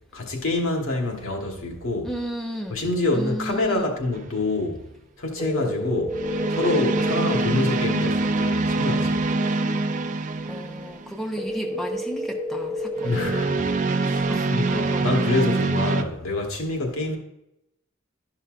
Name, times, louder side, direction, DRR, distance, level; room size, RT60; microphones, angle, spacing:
voice 1, 0.1-2.1 2.7-4.8 5.2-6.2 6.5-9.3 13.0-13.7 14.0-17.2, left 2 dB, 90° left, 1.4 m, -26 dB
voice 2, 2.0-2.8 3.1-3.9 5.6-5.8 9.4-9.6 10.4-13.4 14.3-15.3, equal, ahead, 0.7 m, -34 dB
sound 1, 4.1-4.5 6.1-11.2 13.0-16.0, right 3 dB, 40° right, 0.4 m, -24 dB
sound 2, 5.4-7.4 11.4-13.4, left 1 dB, 25° left, 1.0 m, -30 dB
11.5 x 5.6 x 2.5 m
head